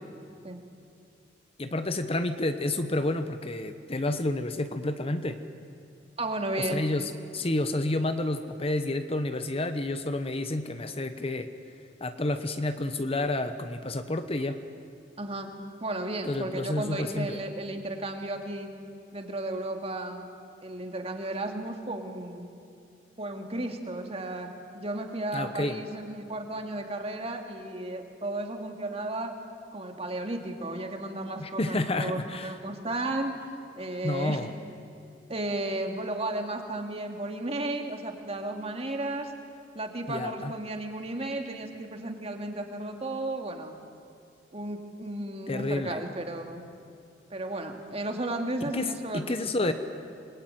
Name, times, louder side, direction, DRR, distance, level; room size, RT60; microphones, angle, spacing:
voice 1, 1.6-5.4 6.6-11.5 12.0-14.6 16.2-17.4 25.3-25.8 31.4-32.5 34.0-34.5 40.1-40.5 45.5-46.0 48.7-49.7, left 2 dB, 35° left, 9 dB, 1.0 m, -30 dB
voice 2, 6.2-6.8 15.2-15.5 15.8-18.7 19.1-20.3 20.6-22.5 23.2-29.3 29.7-33.4 33.7-34.4 35.3-39.3 39.7-43.7 44.5-46.6 47.3-49.3 49.6-49.7, right 2 dB, 35° right, 4 dB, 2.5 m, -34 dB
27.0 x 21.0 x 9.3 m, 2.4 s
head